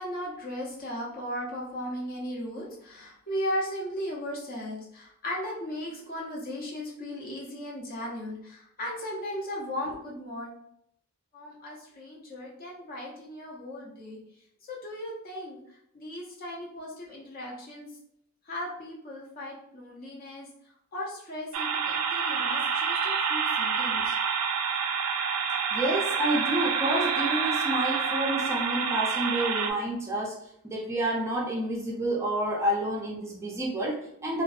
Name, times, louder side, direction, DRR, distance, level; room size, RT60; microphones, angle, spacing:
voice 1, 0.0-10.5 11.3-14.2 14.7-15.6 15.9-17.9 18.5-20.5 20.9-24.1, equal, 40° left, -3 dB, 0.6 m, -36 dB
sound 1, 21.5-29.7, right 6 dB, 85° right, 0.3 m, -28 dB
voice 2, 25.7-30.4 30.6-34.4, right 1 dB, 15° right, -3 dB, 0.4 m, -29 dB
2.5 x 2.2 x 2.3 m, 0.72 s
head